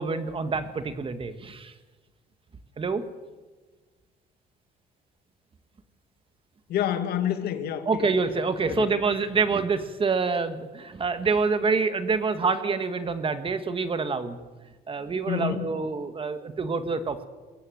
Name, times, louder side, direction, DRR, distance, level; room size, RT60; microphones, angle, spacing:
voice 1, 0.0-1.7 2.8-3.0 7.9-14.4 14.9-17.3, right 4 dB, 30° right, 10 dB, 1.8 m, -27 dB
voice 2, 6.7-8.1 8.7-8.9 15.3-15.7, left 10 dB, 70° left, 9 dB, 1.9 m, -28 dB
21.5 x 16.0 x 7.9 m, 1.3 s
cardioid pair, 110°, 17 cm